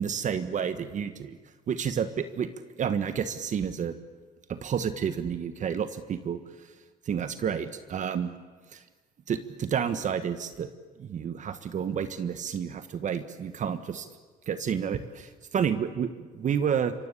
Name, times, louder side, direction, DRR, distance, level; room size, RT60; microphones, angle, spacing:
voice 1, 0.0-1.4 1.7-2.5 2.8-3.9 4.5-6.4 7.1-8.3 8.7-8.8 9.3-10.7 11.0-14.1 14.5-16.9, right 7 dB, 45° right, 11 dB, 1.4 m, -30 dB
26.5 x 23.5 x 8.4 m, 1.4 s
cardioid pair, 110°, 17 cm